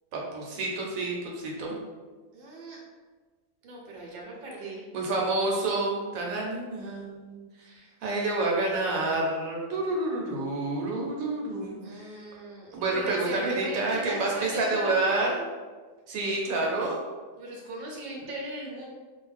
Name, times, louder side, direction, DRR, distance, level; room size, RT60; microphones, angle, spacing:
voice 1, 0.1-1.7 4.9-7.4 8.0-12.1 12.7-15.4 16.1-17.0, right 2 dB, 75° right, -1 dB, 1.0 m, -28 dB
voice 2, 2.3-2.8 3.6-4.9 11.8-15.3 17.4-18.9, right 1 dB, 50° right, -2 dB, 0.7 m, -38 dB
2.5 x 2.1 x 3.3 m, 1.4 s
omnidirectional pair, 1.5 m